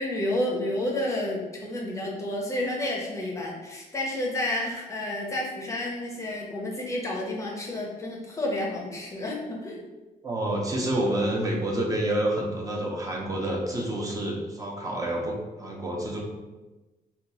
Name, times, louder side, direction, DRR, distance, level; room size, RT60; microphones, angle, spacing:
voice 1, 0.0-9.8, left 1 dB, 20° left, -2 dB, 0.6 m, -30 dB
voice 2, 10.2-16.2, right 1 dB, 25° right, -1 dB, 0.6 m, -28 dB
2.8 x 2.3 x 4.0 m, 1.2 s
cardioid pair, 145°, 15 cm